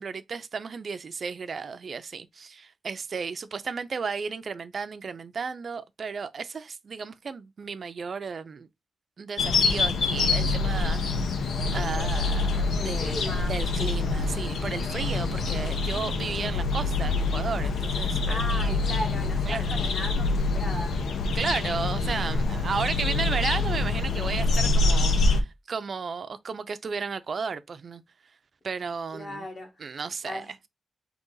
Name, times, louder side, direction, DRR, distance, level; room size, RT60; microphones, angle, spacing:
voice 1, 0.0-8.7 9.2-11.4 11.7-19.0 19.5-19.8 21.3-28.0 28.6-29.5 29.8-30.6, right 5 dB, 45° right, 0.4 m, -34 dB
sound 1, 9.4-25.4, left 3 dB, 80° left, 0.8 m, -26 dB
voice 2, 12.7-13.5 18.3-21.0 29.1-30.5, left 1 dB, 35° left, 1.5 m, -37 dB
3.9 x 2.9 x 3.8 m
wide cardioid pair, 165°, 0 cm